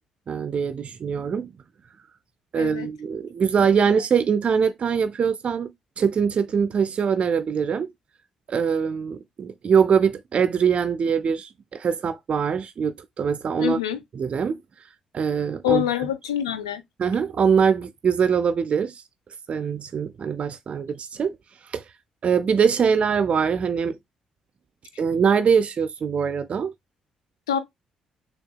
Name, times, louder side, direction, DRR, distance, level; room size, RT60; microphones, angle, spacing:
voice 1, 0.3-1.5 2.5-5.7 6.0-7.9 8.5-13.8 14.1-14.6 15.1-15.9 17.0-19.0 19.5-21.4 21.7-21.8 22.2-24.0 25.0-26.7, right 6 dB, 45° right, 0.4 m, -23 dB
voice 2, 2.6-2.9 13.6-14.0 15.6-16.8 27.5-27.6, left 10 dB, 85° left, 0.3 m, -25 dB
6.4 x 2.3 x 2.3 m
figure-of-eight pair, 40°, 3 cm